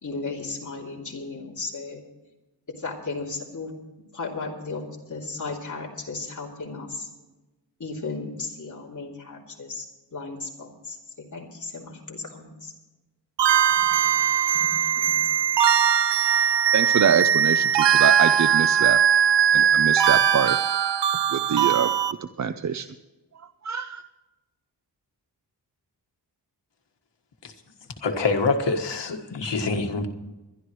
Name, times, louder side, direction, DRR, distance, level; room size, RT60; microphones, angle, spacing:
voice 1, 0.0-2.0 2.7-3.7 4.1-4.8 5.1-7.1 7.8-9.9 10.1-12.7 14.5-14.7 15.0-15.1, left 3 dB, 45° left, -3 dB, 3.1 m, -35 dB
sound 1, 13.4-22.1, right 8 dB, 85° right, 0.6 m, -20 dB
voice 2, 16.7-19.0 19.5-20.6 21.3-21.9 22.4-22.9 23.6-24.0, right 7 dB, 45° right, 10 dB, 0.5 m, -25 dB
voice 3, 28.0-30.1, left 3 dB, 85° left, 4 dB, 1.8 m, -25 dB
22.5 x 12.0 x 3.1 m, 1.1 s
wide cardioid pair, 160°, 41 cm